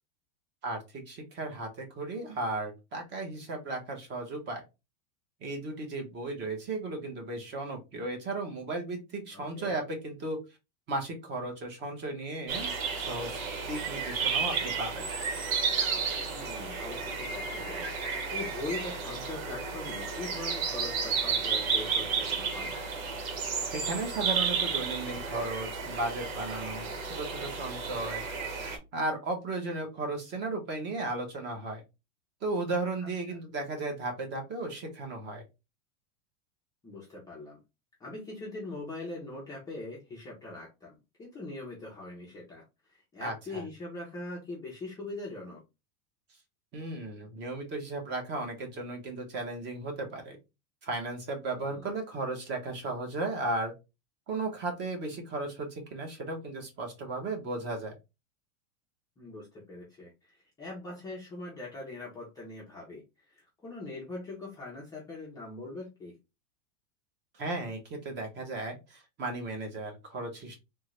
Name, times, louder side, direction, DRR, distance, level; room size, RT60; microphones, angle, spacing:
voice 1, 0.6-4.6 5.4-10.4 10.9-15.1 23.7-28.2 28.9-31.8 32.4-35.4 43.2-43.6 46.7-50.4 50.8-53.7 54.3-57.9 67.3-70.6, right 2 dB, 25° right, 3 dB, 0.9 m, -35 dB
voice 2, 9.3-9.7 16.2-22.8 33.0-33.4 36.8-37.6 38.0-42.6 42.9-45.6 51.5-51.9 59.2-66.2, left 2 dB, 10° left, -5 dB, 0.5 m, -42 dB
sound 1, 12.5-28.8, right 5 dB, 85° right, 1.1 m, -32 dB
3.5 x 2.2 x 3.0 m, 0.25 s
supercardioid pair, 155°, 40 cm